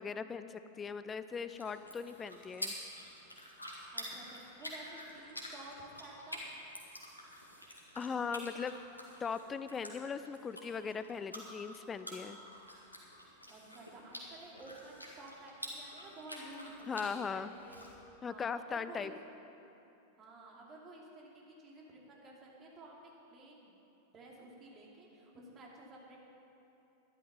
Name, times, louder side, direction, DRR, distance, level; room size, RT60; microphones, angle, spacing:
voice 1, 0.0-2.7 7.9-8.8 9.2-12.4 16.9-17.5 18.2-19.1, left 5 dB, 20° left, 12 dB, 0.5 m, -39 dB
sound 1, 1.3-17.9, left 1 dB, 85° left, 1.8 m, -48 dB
voice 2, 3.9-6.4 13.5-17.8 18.3-19.2 20.2-23.0 23.3-23.8 24.1-26.2, right 2 dB, 25° right, -2 dB, 2.6 m, -52 dB
12.0 x 11.5 x 5.4 m, 2.8 s
figure-of-eight pair, 90°, 0 cm